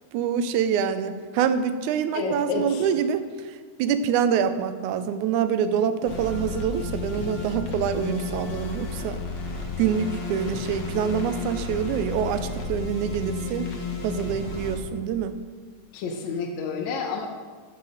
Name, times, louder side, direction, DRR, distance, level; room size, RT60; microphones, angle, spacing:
voice 1, 0.1-3.2 3.8-9.2 9.8-13.7 14.0-15.4, right 8 dB, 80° right, 11 dB, 2.1 m, -25 dB
voice 2, 2.1-2.9 15.9-17.3, left 4 dB, 75° left, 2 dB, 2.1 m, -29 dB
sound 1, 6.0-14.8, left 4 dB, 55° left, 1.4 m, -32 dB
13.5 x 6.0 x 6.4 m, 1.5 s
omnidirectional pair, 3.5 m